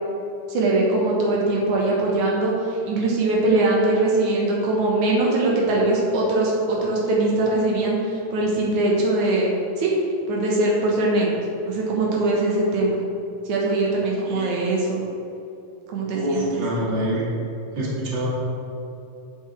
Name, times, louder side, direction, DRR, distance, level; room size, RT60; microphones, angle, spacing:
voice 1, 0.5-9.5 9.8-9.9 10.3-11.3 11.7-13.0 13.5-15.1 15.9-16.5, right 2 dB, 80° right, -3 dB, 2.6 m, -21 dB
voice 2, 16.1-17.2 17.7-18.3, right 1 dB, 40° right, -5 dB, 2.2 m, -25 dB
10.0 x 7.5 x 3.3 m, 2.8 s
omnidirectional pair, 3.4 m